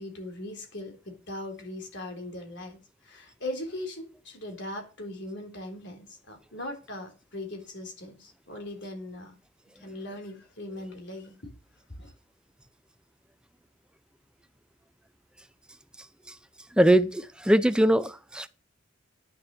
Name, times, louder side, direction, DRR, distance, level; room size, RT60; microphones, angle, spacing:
voice 1, 0.0-9.4 9.8-11.5 12.0-12.1, left 1 dB, 60° left, 3.7 m, -39 dB
voice 2, 16.7-18.5, right 1 dB, 5° right, 0.6 m, -22 dB
10.0 x 7.0 x 6.8 m
head